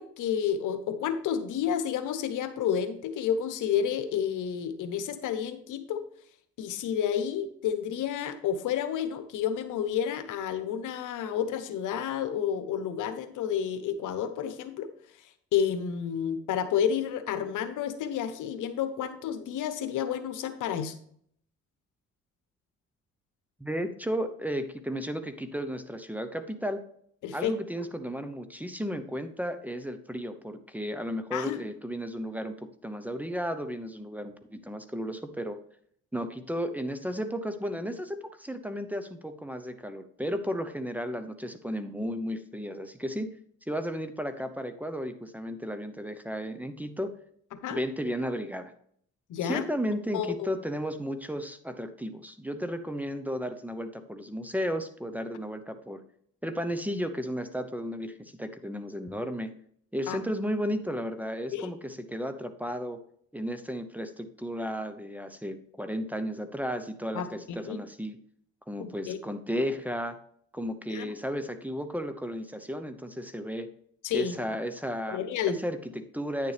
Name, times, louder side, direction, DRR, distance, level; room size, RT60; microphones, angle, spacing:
voice 1, 0.0-6.0 6.6-14.9 15.2-20.9 27.2-27.5 31.3-31.6 47.6-47.8 49.3-49.7 50.1-50.5 60.1-60.2 61.5-61.7 67.1-67.8 68.8-69.2 70.9-71.1 74.0-74.4 75.1-75.6, left 8 dB, 85° left, 9 dB, 1.0 m, -30 dB
voice 2, 23.6-26.8 27.3-32.5 32.8-35.6 36.1-43.3 43.7-47.1 47.7-48.7 49.4-56.0 56.4-59.5 59.9-63.0 63.3-68.2 68.7-70.2 70.5-73.7 74.1-75.2 75.5-76.5, equal, 5° right, 9 dB, 0.8 m, -34 dB
9.7 x 6.8 x 3.4 m, 0.64 s
cardioid pair, 90°, 30 cm